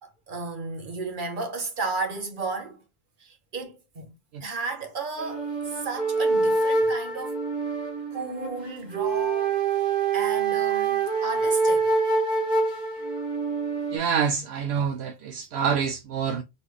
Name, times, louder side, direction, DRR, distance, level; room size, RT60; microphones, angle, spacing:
voice 1, 0.0-2.8 3.2-4.1 4.4-7.4 8.1-11.9, right 3 dB, 50° right, 1.2 m, -34 dB
sound 1, 5.2-14.0, right 4 dB, 40° left, 1.5 m, -25 dB
voice 2, 13.9-16.4, right 7 dB, 75° right, 0.8 m, -26 dB
4.1 x 3.1 x 3.3 m
omnidirectional pair, 1.1 m